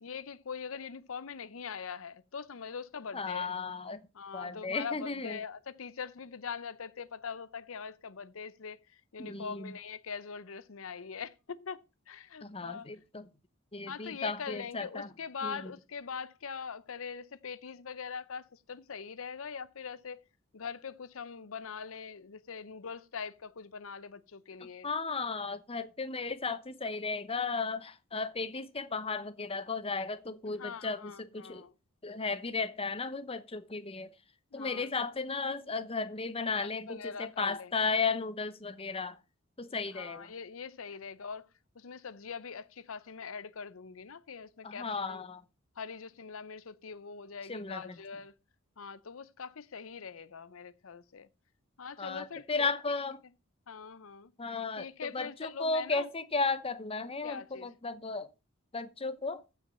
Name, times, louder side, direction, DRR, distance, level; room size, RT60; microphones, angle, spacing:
voice 1, 0.0-3.5 4.1-11.8 12.1-12.9 13.9-20.2 20.5-24.9 30.5-31.7 34.5-34.9 36.4-37.7 39.9-41.5 41.8-45.2 45.8-48.3 48.8-51.3 51.8-52.7 53.7-54.3 54.8-56.1 57.2-57.7, left 6 dB, 80° left, 0.7 m, -42 dB
voice 2, 3.1-4.0 4.3-5.4 9.2-9.7 12.4-13.3 13.7-15.1 15.4-15.7 24.8-31.7 32.0-34.1 34.5-39.2 39.6-40.3 44.6-45.4 47.5-47.8 52.0-53.2 54.4-58.3 58.7-59.4, left 4 dB, 30° left, 0.9 m, -35 dB
15.0 x 6.0 x 5.4 m
head